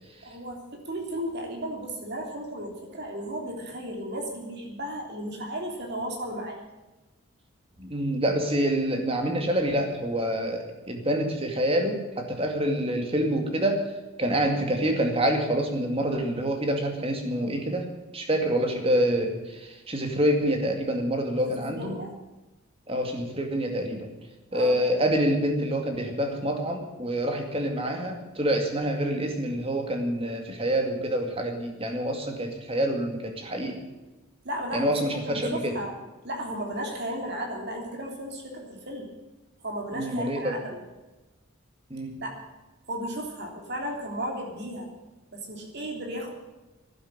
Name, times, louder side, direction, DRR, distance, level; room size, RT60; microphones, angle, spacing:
voice 1, 0.2-0.6 0.8-6.6 21.4-22.1 24.5-24.8 34.4-35.9 36.2-39.1 39.6-40.8 42.2-42.4 42.9-44.9 45.3-46.3, right 1 dB, 50° right, 1 dB, 3.3 m, -34 dB
voice 2, 7.8-13.8 14.2-22.0 22.9-24.1 24.5-33.8 34.7-35.8 39.9-40.6 41.9-42.1, right 1 dB, 25° right, 4 dB, 2.3 m, -27 dB
12.5 x 10.0 x 9.7 m, 1.1 s
head